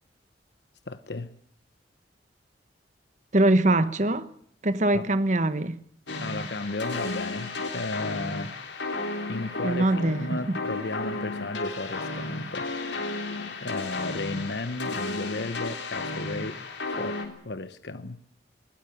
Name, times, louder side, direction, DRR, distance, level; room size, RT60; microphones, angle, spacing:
voice 1, 0.9-1.3 4.9-5.0 6.2-8.5 9.3-9.9 10.2-12.7 13.6-18.2, left 2 dB, 70° left, 1.0 m, -34 dB
voice 2, 3.3-4.3 4.6-5.8 9.6-10.2 10.5-10.6, right 1 dB, 40° right, 1.2 m, -22 dB
sound 1, 6.1-17.3, left 2 dB, 90° left, 3.7 m, -33 dB
21.0 x 18.0 x 9.2 m
head